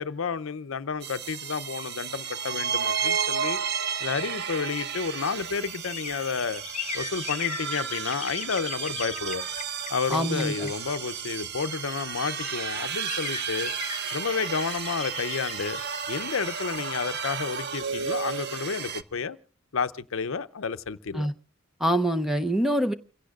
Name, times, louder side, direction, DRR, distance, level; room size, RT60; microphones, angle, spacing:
voice 1, 0.0-3.6 4.0-6.6 6.9-9.4 9.9-13.7 14.1-15.8 16.1-19.4 19.7-21.3, left 5 dB, 80° left, 0.6 m, -31 dB
sound 1, 1.0-19.0, right 7 dB, 55° right, 0.8 m, -32 dB
sound 2, 4.8-11.6 12.1-12.2 12.4-18.2 18.5-18.6, left 7 dB, 35° left, 0.8 m, -39 dB
voice 2, 10.1-10.7 21.2-21.3 21.8-22.9, equal, ahead, 0.6 m, -25 dB
29.5 x 16.5 x 2.4 m
head